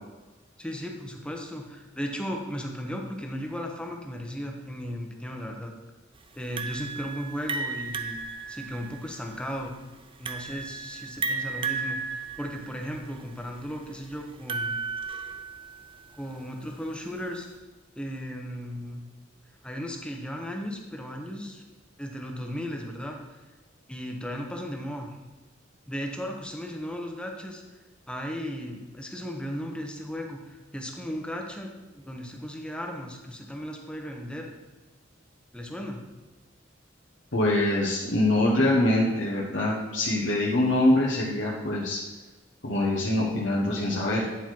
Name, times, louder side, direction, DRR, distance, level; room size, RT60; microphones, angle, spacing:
voice 1, 0.6-5.7 6.3-8.2 8.5-9.7 10.2-14.8 16.1-17.5 18.0-19.0 19.6-21.6 22.0-23.4 23.9-25.2 25.9-27.6 28.1-34.5 35.5-36.0, equal, 5° left, 1 dB, 0.9 m, -36 dB
sound 1, 6.6-15.9, right 4 dB, 30° right, 0.5 m, -34 dB
voice 2, 37.3-42.0 42.6-44.2, left 1 dB, 70° left, -3 dB, 1.1 m, -24 dB
9.5 x 4.4 x 4.5 m, 1.2 s
head